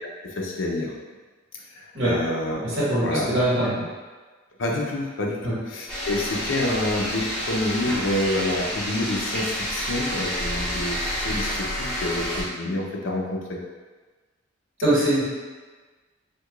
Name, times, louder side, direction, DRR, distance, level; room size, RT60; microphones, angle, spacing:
voice 1, 0.2-0.9 1.8-2.6 3.0-3.3 4.6-13.6, left 1 dB, 65° left, -2 dB, 0.6 m, -28 dB
voice 2, 2.8-3.8 5.4-5.5 14.8-15.2, right 1 dB, 75° right, -9 dB, 1.5 m, -22 dB
sound 1, 5.9-12.4, equal, 5° left, 0.7 m, -29 dB
4.6 x 2.3 x 2.3 m, 1.3 s
head